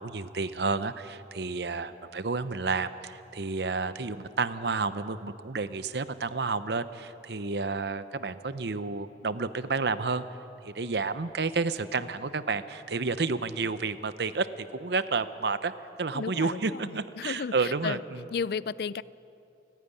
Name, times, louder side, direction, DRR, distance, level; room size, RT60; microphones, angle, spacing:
voice 1, 0.0-10.2 10.6-15.7 16.0-18.2, right 4 dB, 75° right, 12 dB, 0.8 m, -30 dB
voice 2, 16.1-18.0 18.3-19.0, left 5 dB, 60° left, 19 dB, 0.4 m, -34 dB
28.0 x 9.4 x 9.9 m, 2.8 s
head